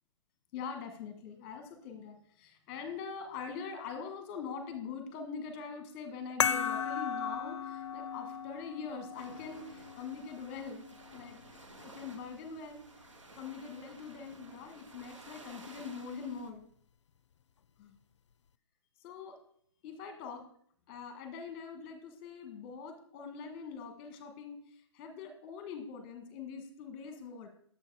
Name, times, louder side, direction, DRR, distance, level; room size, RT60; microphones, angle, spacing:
voice 1, 0.5-10.9 11.1-12.9 13.4-16.7 17.8-18.0 19.0-19.4 19.8-20.4 20.9-27.5, left 6 dB, 25° left, 6 dB, 1.2 m, -43 dB
sound 1, 6.4-11.5, left 7 dB, 70° left, 0.4 m, -36 dB
sound 2, 9.1-16.5, right 2 dB, 90° right, 1.3 m, -54 dB
7.3 x 4.5 x 4.6 m, 0.62 s
figure-of-eight pair, 140°, 15 cm